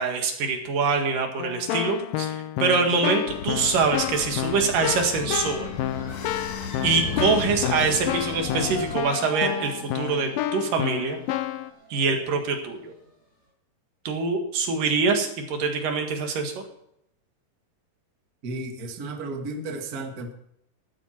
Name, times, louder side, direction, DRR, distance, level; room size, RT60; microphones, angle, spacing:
voice 1, 0.0-5.7 6.8-11.2 11.9-12.9 14.1-16.5, right 4 dB, 75° right, 4 dB, 3.6 m, -24 dB
Keyboard (musical), 1.4-11.7, left 12 dB, 85° left, 2.5 m, -30 dB
sound 1, 3.3-9.0, left 6 dB, 65° left, 2.1 m, -35 dB
sound 2, 3.6-13.0, equal, 20° left, 5.4 m, -41 dB
voice 2, 18.4-20.3, right 2 dB, 35° right, 4 dB, 1.7 m, -33 dB
14.0 x 13.0 x 4.4 m, 0.78 s
omnidirectional pair, 3.9 m